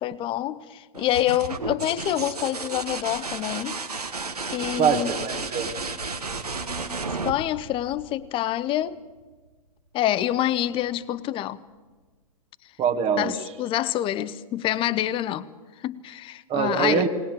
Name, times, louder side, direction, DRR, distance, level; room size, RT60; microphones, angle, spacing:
voice 1, 0.0-3.8 4.5-5.1 7.2-9.0 9.9-11.6 13.2-15.5 15.8-17.1, left 13 dB, 25° left, 0.8 m, -26 dB
sound 1, 0.9-8.5 10.3-10.9, right 4 dB, 85° right, 1.3 m, -33 dB
voice 2, 4.8-5.8 12.8-13.4 16.5-17.1, right 7 dB, 30° right, 1.6 m, -24 dB
20.5 x 19.5 x 7.7 m
figure-of-eight pair, 105°, 19 cm